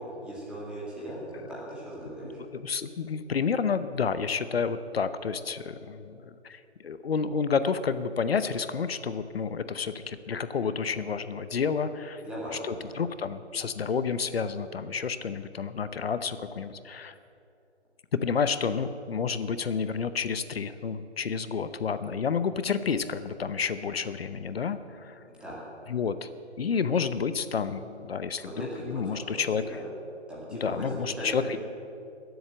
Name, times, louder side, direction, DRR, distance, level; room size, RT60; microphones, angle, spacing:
voice 1, 0.0-2.4 12.2-13.0 25.4-25.6 28.4-29.4 29.7-29.8 30.3-31.6, right 1 dB, 5° right, -7 dB, 2.0 m, -38 dB
voice 2, 2.4-6.2 6.4-12.2 12.6-17.1 18.2-25.2 25.9-26.3 26.6-29.6 30.6-31.6, left 6 dB, 60° left, 12 dB, 0.7 m, -30 dB
16.0 x 8.0 x 7.5 m, 2.6 s
hypercardioid pair, 160°, 35 cm